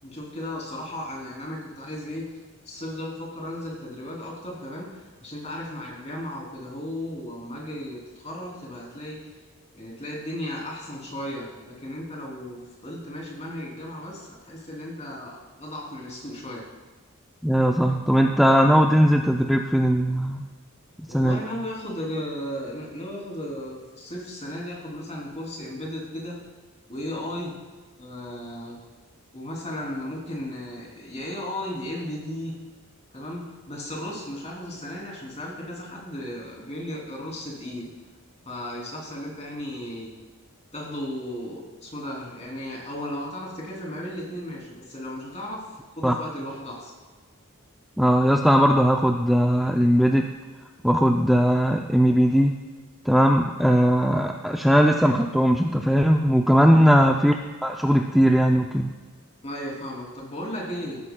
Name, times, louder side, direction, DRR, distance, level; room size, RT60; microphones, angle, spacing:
voice 1, 0.0-2.4 2.6-9.3 9.7-16.7 21.1-26.4 26.9-27.6 28.0-28.9 29.3-32.5 33.1-37.9 38.4-40.1 40.7-45.7 45.9-46.9 56.7-56.8 59.4-61.0, left 1 dB, 30° left, -2 dB, 2.9 m, -35 dB
voice 2, 17.4-20.5 21.1-21.4 46.0-46.1 48.0-50.3 50.8-52.6 53.1-57.3 57.6-58.9, equal, ahead, 2 dB, 0.4 m, -19 dB
18.0 x 9.5 x 2.2 m, 1.4 s
head